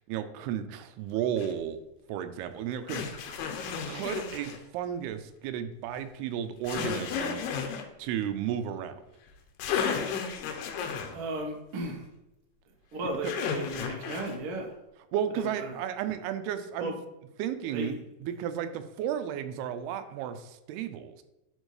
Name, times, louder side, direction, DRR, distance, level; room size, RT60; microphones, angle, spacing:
voice 1, 0.1-1.8 2.1-3.3 3.9-7.4 8.0-9.0 15.1-16.9 17.4-21.2, right 9 dB, 90° right, 10 dB, 2.6 m, -33 dB
sound 1, 1.4-1.5 2.9-4.6 6.6-7.8 9.3-9.4 9.6-11.1 13.2-14.4, left 6 dB, 85° left, 2.9 m, -33 dB
voice 2, 11.1-12.1 12.9-14.8 15.3-15.8 16.8-17.0 17.7-18.0, right 1 dB, 70° right, 0 dB, 1.3 m, -35 dB
11.5 x 4.5 x 3.2 m, 0.93 s
omnidirectional pair, 4.5 m